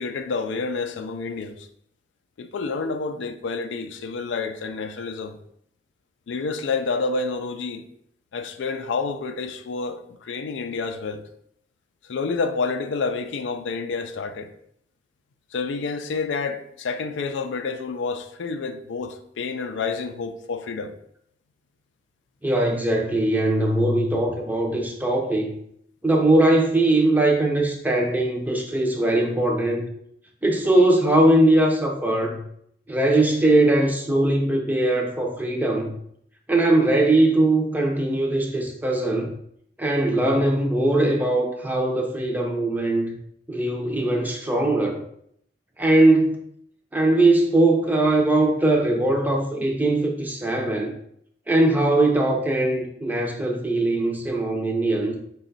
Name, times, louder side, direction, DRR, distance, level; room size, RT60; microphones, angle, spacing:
voice 1, 0.0-1.7 2.4-5.4 6.3-7.8 8.3-11.2 12.1-14.5 15.5-21.0, left 4 dB, 80° left, 0.4 m, -29 dB
voice 2, 22.4-25.5 26.0-29.9 30.4-32.4 32.9-35.9 36.5-39.3 39.8-43.2 43.5-45.0 45.8-46.4 46.9-50.9 51.5-55.2, right 1 dB, 10° right, 0.5 m, -20 dB
4.8 x 2.3 x 3.9 m
head